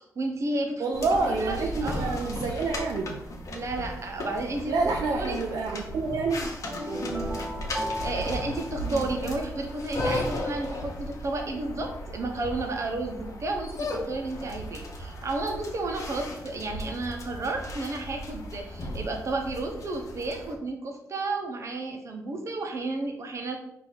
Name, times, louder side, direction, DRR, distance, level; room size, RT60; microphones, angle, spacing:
voice 1, 0.0-0.8 1.4-2.3 3.5-5.4 7.9-23.6, right 2 dB, 50° right, 3 dB, 0.9 m, -32 dB
voice 2, 0.8-3.2 4.7-6.5 6.9-7.4 8.8-9.1, right 3 dB, 75° right, 1 dB, 0.5 m, -28 dB
sound 1, 0.9-20.5, left 1 dB, 60° left, 0.9 m, -36 dB
sound 2, 6.7-9.7, equal, 20° right, 1.0 m, -35 dB
4.6 x 2.7 x 4.1 m, 0.78 s
cardioid pair, 85°, 6 cm